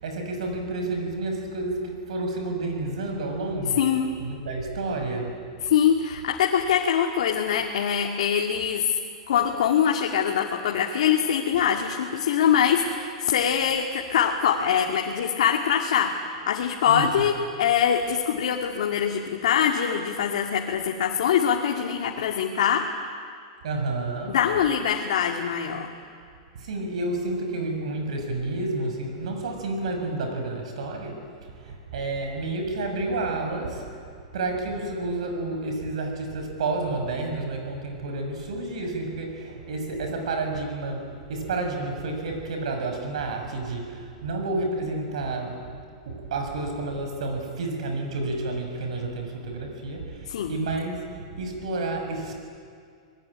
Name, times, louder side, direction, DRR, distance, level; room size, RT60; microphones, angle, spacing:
voice 1, 0.0-3.8 4.2-5.3 16.9-17.3 23.6-24.4 26.5-33.8 34.3-45.6 46.0-51.0 51.3-52.3, right 2 dB, 80° right, 4 dB, 6.6 m, -30 dB
voice 2, 3.8-4.1 5.6-9.0 9.3-22.9 24.3-25.9 50.3-50.5, left 8 dB, 75° left, 1 dB, 2.3 m, -23 dB
26.0 x 20.5 x 10.0 m, 2.2 s
supercardioid pair, 160°, 3 cm